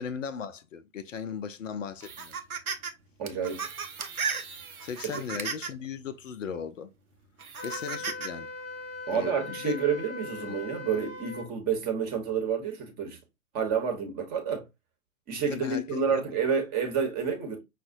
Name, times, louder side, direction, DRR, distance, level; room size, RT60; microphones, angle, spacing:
voice 1, 0.0-2.4 4.8-6.9 7.6-8.5 9.1-9.8 10.4-10.6 15.5-16.3, left 6 dB, 65° left, 0.5 m, -37 dB
sound 1, 2.0-2.9 3.3-5.9 6.5-6.6 7.4-8.3, right 5 dB, 85° right, 0.7 m, -35 dB
voice 2, 3.2-3.7 5.0-5.2 9.1-13.2 13.5-14.7 15.3-17.6, right 6 dB, 20° right, 0.9 m, -29 dB
Wind instrument woodwind instrument, 7.6-11.5, left 3 dB, 20° left, 0.5 m, -40 dB
5.4 x 2.2 x 2.5 m
figure-of-eight pair, 105°, 42 cm